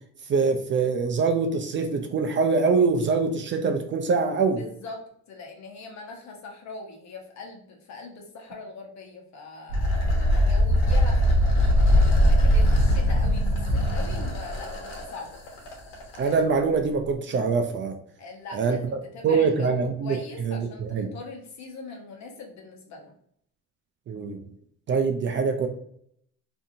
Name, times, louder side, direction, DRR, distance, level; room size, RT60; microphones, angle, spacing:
voice 1, 0.3-4.6 16.1-18.0 18.5-19.0 19.2-20.2 20.4-21.1 24.1-24.4 24.9-25.7, right 4 dB, 35° right, 5 dB, 0.4 m, -24 dB
voice 2, 4.6-15.4 18.2-23.1, left 3 dB, 55° left, 2 dB, 1.0 m, -41 dB
sound 1, 9.7-16.4, left 1 dB, 75° left, 1.2 m, -40 dB
sound 2, 9.7-14.6, equal, 50° right, 0.8 m, -20 dB
2.7 x 2.6 x 2.6 m, 0.68 s
cardioid pair, 100°, 34 cm